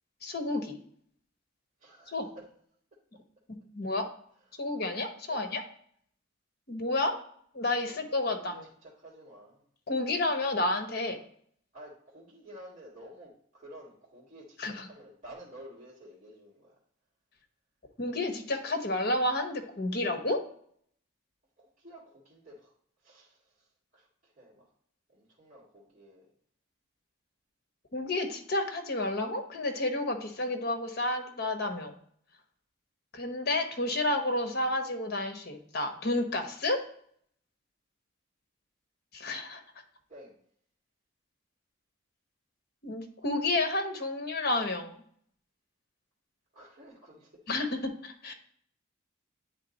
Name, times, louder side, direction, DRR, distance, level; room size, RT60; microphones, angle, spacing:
voice 1, 0.2-0.7 2.1-2.3 3.7-4.1 4.6-5.6 6.7-7.1 7.5-8.7 9.9-11.2 14.6-14.9 18.0-20.4 27.9-31.9 33.1-36.8 39.1-39.6 42.8-45.0 47.5-48.3, left 2 dB, 50° left, 5 dB, 1.0 m, -30 dB
voice 2, 1.8-2.4 4.5-5.0 5.3-5.5 7.8-8.6 8.8-9.6 11.7-16.8 21.6-22.7 23.0-24.7 25.1-26.3 40.1-40.4 46.5-47.3, right 1 dB, 35° right, -9 dB, 2.0 m, -52 dB
9.1 x 3.5 x 4.1 m, 0.63 s
head